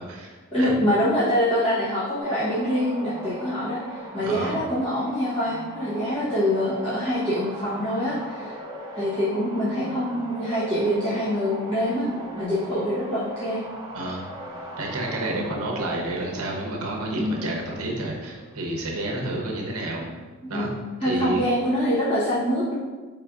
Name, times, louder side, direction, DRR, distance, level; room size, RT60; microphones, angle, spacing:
voice 1, 0.0-0.7 4.2-4.6 13.9-14.3 14.8-20.0 20.5-20.7 21.0-21.4, right 2 dB, 75° right, -1 dB, 0.8 m, -30 dB
voice 2, 0.5-3.8 4.1-8.5 8.9-12.1 12.3-13.6 15.3-15.5 17.2-17.3 20.4-20.7 21.0-22.7, equal, 25° left, -13 dB, 1.0 m, -25 dB
sound 1, 2.2-18.9, right 1 dB, 15° right, 0.5 m, -39 dB
4.6 x 3.3 x 2.4 m, 1.3 s
head